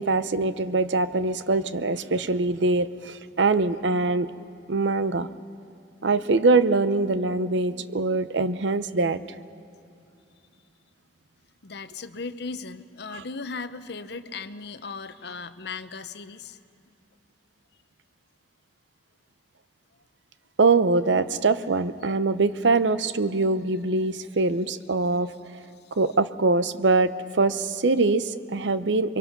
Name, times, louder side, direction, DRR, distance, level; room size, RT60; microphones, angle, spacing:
voice 1, 0.0-4.3 4.7-5.3 6.0-9.2 13.1-13.2 20.6-25.6 26.0-29.2, right 3 dB, 75° right, 13 dB, 0.7 m, -23 dB
voice 2, 11.6-16.6, left 4 dB, 60° left, 11 dB, 0.8 m, -37 dB
28.5 x 23.0 x 6.0 m, 2.5 s
head